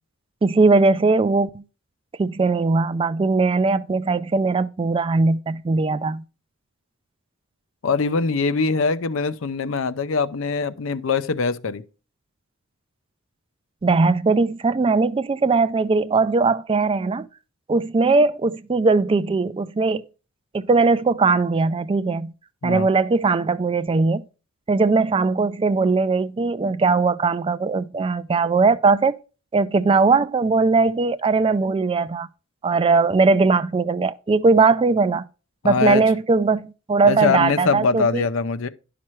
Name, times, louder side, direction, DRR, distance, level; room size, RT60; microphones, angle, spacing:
voice 1, 0.4-1.6 2.2-6.2 13.8-17.3 17.7-20.0 20.5-22.3 22.6-24.2 24.7-29.2 29.5-32.3 32.6-35.3 35.6-38.3, right 3 dB, 25° right, 0.3 m, -19 dB
voice 2, 7.8-11.8 22.6-22.9 35.6-36.0 37.0-38.7, left 4 dB, 70° left, 0.5 m, -22 dB
11.0 x 5.8 x 3.1 m
head